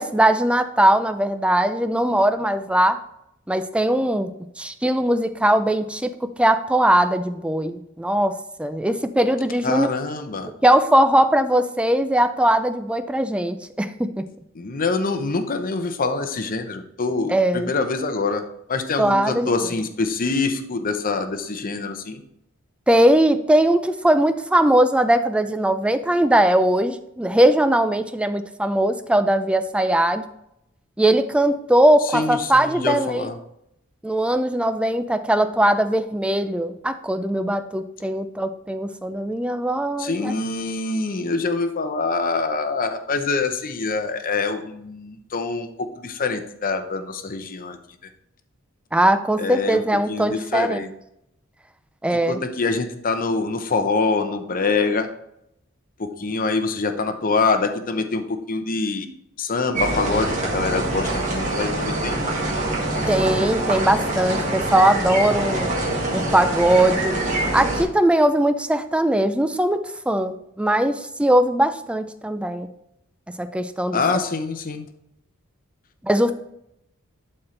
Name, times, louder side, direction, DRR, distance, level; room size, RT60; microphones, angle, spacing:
voice 1, 0.0-3.0 3.5-4.3 4.6-9.9 10.6-14.2 17.3-17.7 19.0-19.5 22.9-30.2 31.0-33.3 34.0-40.3 48.9-50.9 52.0-52.4 63.0-65.7 66.1-67.1 67.5-72.7 73.3-74.0 76.0-76.3, right 1 dB, 5° right, 10 dB, 0.4 m, -20 dB
voice 2, 9.6-10.5 14.5-18.4 18.7-22.2 32.1-33.4 40.0-47.8 49.4-49.8 50.1-50.9 52.3-55.1 56.0-59.1 59.4-62.2 73.9-74.9, left 3 dB, 45° left, 7 dB, 0.7 m, -25 dB
sound 1, 59.7-67.8, right 2 dB, 35° right, 1.9 m, -25 dB
11.0 x 4.4 x 3.3 m, 0.80 s
head